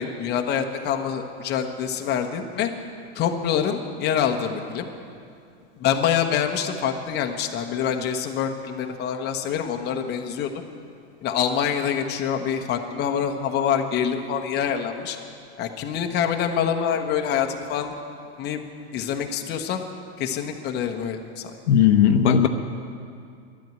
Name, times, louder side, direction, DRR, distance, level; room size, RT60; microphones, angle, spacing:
voice 1, 0.0-2.7 3.1-4.9 5.8-10.5 11.2-15.2 15.6-17.9 18.4-18.6 18.9-19.8 20.2-21.6, left 8 dB, 30° left, 4 dB, 1.1 m, -26 dB
voice 2, 21.7-22.5, left 8 dB, 90° left, 7 dB, 1.0 m, -16 dB
11.5 x 9.2 x 9.1 m, 2.4 s
supercardioid pair, 135°, 33 cm